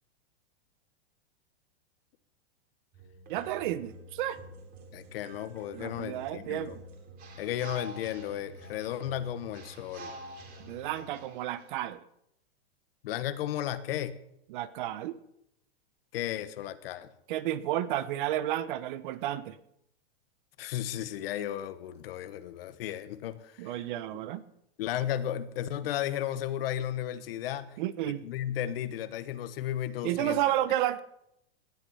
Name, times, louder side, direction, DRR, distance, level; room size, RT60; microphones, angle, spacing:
sound 1, 2.9-11.7, right 1 dB, 30° right, 3.4 m, -48 dB
voice 1, 3.3-4.4 5.7-6.7 10.6-12.0 14.5-15.2 17.3-19.6 23.6-24.4 27.8-28.2 30.0-31.0, right 13 dB, 50° right, 15 dB, 1.0 m, -31 dB
voice 2, 4.9-6.8 7.4-10.1 13.0-14.2 16.1-17.1 20.6-23.8 24.8-27.8 28.0-30.4, left 11 dB, 60° left, 13 dB, 1.3 m, -34 dB
18.0 x 11.0 x 5.6 m, 0.77 s
supercardioid pair, 155°, 32 cm